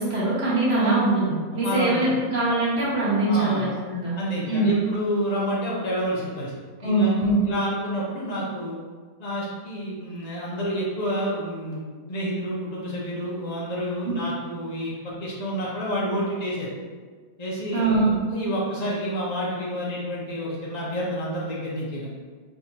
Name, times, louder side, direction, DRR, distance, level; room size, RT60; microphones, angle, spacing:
voice 1, 0.0-4.1 4.4-4.7 6.8-7.4 14.0-14.1 17.7-18.2, right 2 dB, 45° right, -7 dB, 1.1 m, -22 dB
voice 2, 0.7-1.0 1.6-2.1 3.3-3.6 4.2-6.5 6.8-8.8 9.2-14.9 15.2-16.7 17.4-18.0 18.3-22.1, equal, 85° left, -5 dB, 0.3 m, -29 dB
4.4 x 2.9 x 2.8 m, 1.5 s
omnidirectional pair, 1.8 m